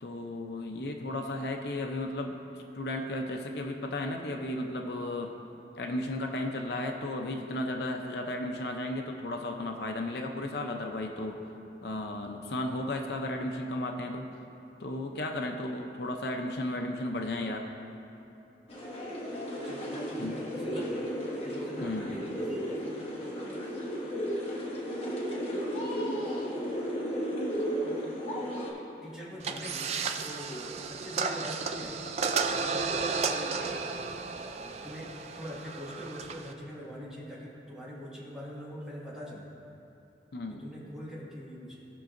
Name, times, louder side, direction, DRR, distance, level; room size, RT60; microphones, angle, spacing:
voice 1, 0.0-5.3 5.8-11.4 11.8-14.3 14.8-17.7 20.2-20.4 21.8-22.2 40.3-40.6, left 1 dB, 70° left, 3 dB, 0.6 m, -34 dB
sound 1, 18.7-28.7, equal, 35° left, 1.2 m, -34 dB
voice 2, 19.6-21.1 21.4-24.3 25.6-26.8 27.8-28.3 28.6-32.1 32.5-33.9 34.3-39.5 40.6-41.8, equal, 5° right, -7 dB, 1.6 m, -44 dB
sound 2, 29.4-36.5, right 5 dB, 35° right, 0.4 m, -33 dB
17.5 x 5.9 x 2.6 m, 2.9 s
head